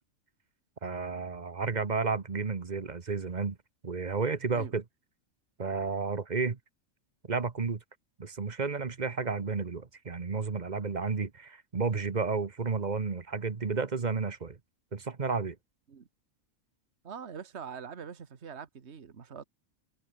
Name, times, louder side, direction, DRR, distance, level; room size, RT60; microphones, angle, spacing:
voice 1, 0.8-3.6 3.8-4.8 5.6-6.6 7.3-7.8 8.2-14.6 14.9-15.6, right 4 dB, 35° right, 1.2 m, -32 dB
voice 2, 17.0-19.4, right 7 dB, 55° right, 1.8 m, -43 dB
omnidirectional pair, 1.4 m